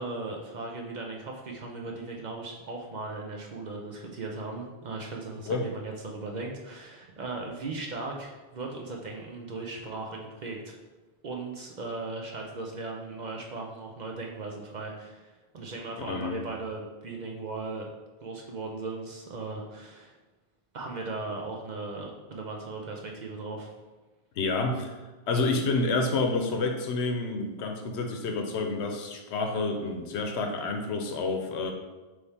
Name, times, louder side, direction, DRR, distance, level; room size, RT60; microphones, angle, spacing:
voice 1, 0.0-10.8 11.2-17.9 18.2-20.2 20.7-23.7, right 3 dB, 50° right, 0 dB, 0.6 m, -37 dB
voice 2, 16.1-16.4 24.4-24.9 25.3-31.7, left 3 dB, 85° left, 4 dB, 0.9 m, -29 dB
3.5 x 3.2 x 4.1 m, 1.2 s
omnidirectional pair, 1.1 m